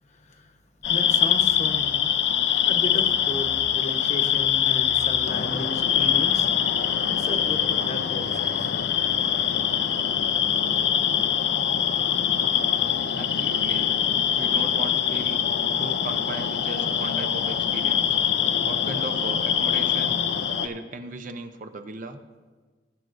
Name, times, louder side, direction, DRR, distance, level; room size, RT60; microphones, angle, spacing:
voice 1, 0.0-0.6 0.8-2.1 2.6-8.7, left 1 dB, 40° left, 5 dB, 1.0 m, -35 dB
sound 1, 0.8-20.7, left 9 dB, 75° left, 0.5 m, -23 dB
voice 2, 13.1-13.9 14.4-15.4 15.8-18.2 18.6-20.2 20.6-22.2, right 2 dB, 50° right, 7 dB, 0.7 m, -37 dB
18.5 x 8.9 x 2.6 m, 1.4 s
head